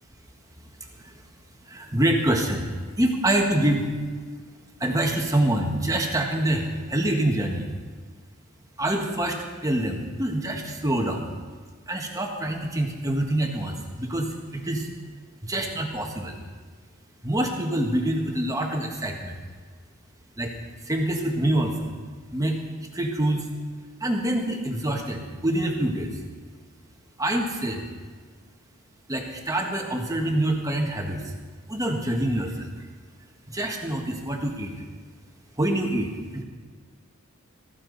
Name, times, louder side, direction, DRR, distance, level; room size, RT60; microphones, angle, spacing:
voice 1, 1.6-2.7 3.0-3.9 4.8-7.7 8.8-11.3 11.9-14.9 15.4-16.4 17.2-19.4 20.4-20.5 20.8-21.9 22.3-22.6 22.9-23.5 24.0-26.2 27.2-27.8 29.1-31.2 31.7-32.7 33.5-34.7 35.6-36.4, right 1 dB, 15° right, 2 dB, 1.5 m, -26 dB
14.5 x 14.5 x 4.0 m, 1.5 s
head